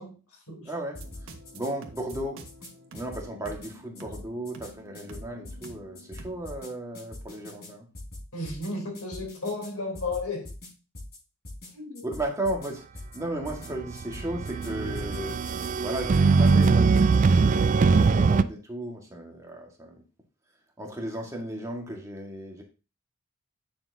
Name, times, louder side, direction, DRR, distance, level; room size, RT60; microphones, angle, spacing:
voice 1, 0.0-0.7 8.3-10.5 11.7-12.0, left 2 dB, 85° left, 3.5 m, -34 dB
voice 2, 0.6-2.5 2.9-7.9 12.0-15.4 15.8-20.0 20.8-22.6, right 1 dB, 15° right, 1.7 m, -35 dB
sound 1, 0.9-1.7 2.0-2.7 2.9-3.7 3.9-4.7 4.9-5.7 6.0-6.7 6.9-7.7 7.9-8.7 8.9-9.7 9.9-10.7 10.9-11.2 11.4-11.7 11.9-12.7 12.9-13.2 13.4-13.7 14.0-14.7 14.9-15.7 15.9-16.7 16.9-17.2, left 1 dB, 50° left, 4.7 m, -42 dB
sound 2, 0.9-6.4, right 1 dB, 75° right, 1.3 m, -48 dB
sound 3, 13.6-18.4, right 4 dB, 35° right, 0.3 m, -21 dB
8.9 x 7.0 x 2.8 m
head